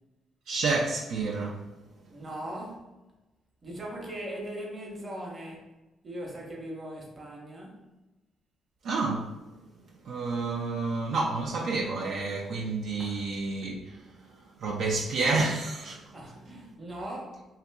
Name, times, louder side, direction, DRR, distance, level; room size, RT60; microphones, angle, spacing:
voice 1, 0.5-1.6 8.8-9.3 10.1-14.0 14.6-16.0, right 3 dB, 75° right, 0.3 m, -29 dB
voice 2, 2.1-2.9 3.6-5.7 6.0-7.8 13.0-13.2 16.1-17.6, right 1 dB, 30° right, 0.7 m, -39 dB
2.7 x 2.4 x 2.2 m
cardioid pair, 80°, 0 cm